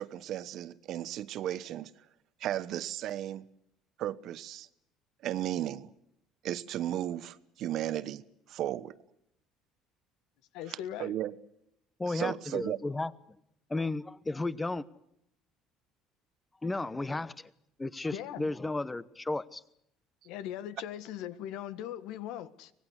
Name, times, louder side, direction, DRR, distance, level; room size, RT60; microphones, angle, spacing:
voice 1, 0.0-1.9 2.4-3.5 4.0-4.7 5.2-5.9 6.4-8.2 8.5-9.0 11.0-11.3 12.1-12.8, right 12 dB, 55° right, 1.2 m, -35 dB
voice 2, 10.5-11.1 18.1-18.5 20.2-22.7, left 11 dB, 75° left, 1.6 m, -39 dB
voice 3, 12.0-13.1 13.7-14.8 16.6-17.5 17.8-19.6, left 2 dB, 10° left, 1.1 m, -33 dB
24.5 x 20.0 x 8.1 m
cardioid pair, 135°, 0 cm